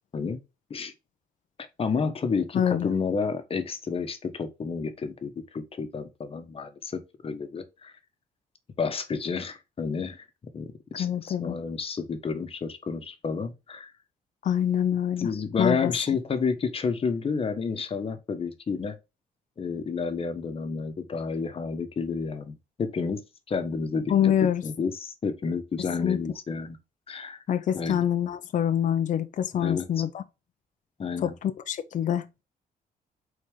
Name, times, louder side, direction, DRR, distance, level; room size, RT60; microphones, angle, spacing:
voice 1, 1.8-7.9 8.8-10.2 10.5-13.9 15.2-19.0 19.6-23.2 23.5-24.3 24.6-26.8 27.1-27.4 27.7-28.0 29.5-29.9 31.0-31.3, left 5 dB, 40° left, 1.2 m, -30 dB
voice 2, 2.5-2.9 11.0-11.6 14.4-15.3 15.6-15.9 24.1-24.6 26.0-26.2 27.5-30.2 31.2-32.3, left 9 dB, 55° left, 0.7 m, -25 dB
5.4 x 4.2 x 4.9 m
cardioid pair, 120°, 15 cm